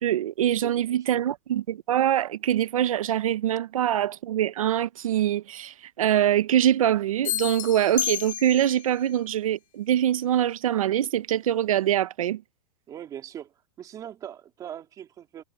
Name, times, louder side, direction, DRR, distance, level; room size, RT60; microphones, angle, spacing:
voice 1, 0.0-12.4, right 11 dB, 90° right, 1.1 m, -24 dB
voice 2, 0.6-1.2 12.9-15.4, right 10 dB, 20° right, 3.2 m, -41 dB
sound 1, 7.2-8.9, left 13 dB, 75° left, 0.9 m, -31 dB
supercardioid pair, 160°, 17 cm